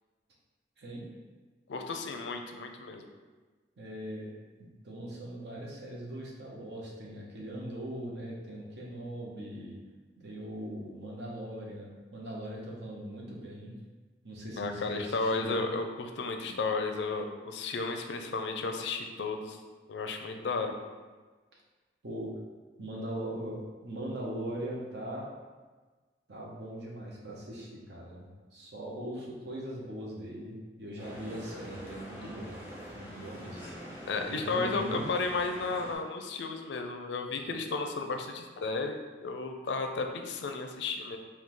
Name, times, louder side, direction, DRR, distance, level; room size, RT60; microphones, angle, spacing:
voice 1, 0.8-1.1 3.8-4.3 4.6-9.8 10.2-13.8 14.2-15.6 22.0-22.3 22.8-25.3 26.3-32.6 32.9-33.7 34.3-35.1, right 1 dB, 70° right, -2 dB, 0.9 m, -40 dB
voice 2, 1.7-3.1 14.6-19.6 19.9-20.7 34.1-41.2, left 3 dB, 75° left, 4 dB, 0.4 m, -33 dB
sound 1, 31.0-36.0, equal, 10° right, 0.9 m, -44 dB
4.6 x 2.3 x 3.7 m, 1.3 s
head